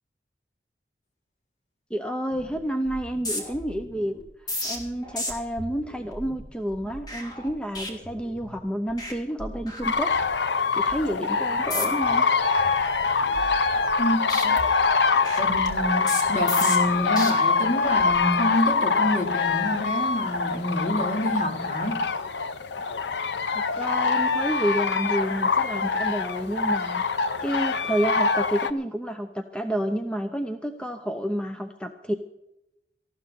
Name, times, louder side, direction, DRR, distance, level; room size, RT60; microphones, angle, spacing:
voice 1, 1.9-4.2 4.6-10.1 10.7-12.2 23.5-27.0 27.4-32.1, equal, 5° left, 6 dB, 0.7 m, -29 dB
sound 1, 2.3-2.6 2.9-8.6 8.9-9.1 9.4-10.4 10.8-11.0 11.6-12.1 12.5-14.0 14.3-17.3 17.8-18.2, left 1 dB, 20° left, 3.0 m, -35 dB
sound 2, 9.8-28.7, left 4 dB, 75° left, 0.8 m, -24 dB
voice 2, 14.0-14.6 15.4-22.1, equal, 40° left, 1 dB, 3.3 m, -28 dB
18.5 x 14.5 x 4.2 m, 0.89 s
head